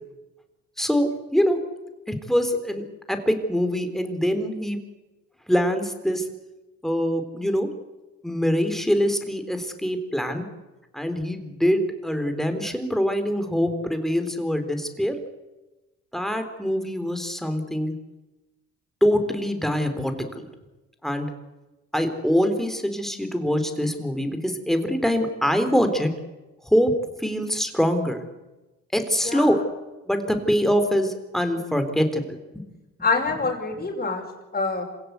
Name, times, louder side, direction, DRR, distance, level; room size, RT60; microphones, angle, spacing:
voice 1, 0.8-1.6 2.1-2.8 3.1-4.8 5.5-6.3 6.8-7.7 8.2-10.5 10.9-15.2 16.1-17.9 19.0-20.5 21.0-21.3 21.9-26.1 26.6-26.9 27.2-28.2 28.9-29.6 30.1-32.6, equal, ahead, 7 dB, 3.6 m, -24 dB
voice 2, 29.2-29.6 33.0-34.2 34.5-34.8, left 4 dB, 30° left, -3 dB, 5.5 m, -25 dB
26.5 x 16.5 x 8.2 m, 1.1 s
cardioid pair, 90°, 30 cm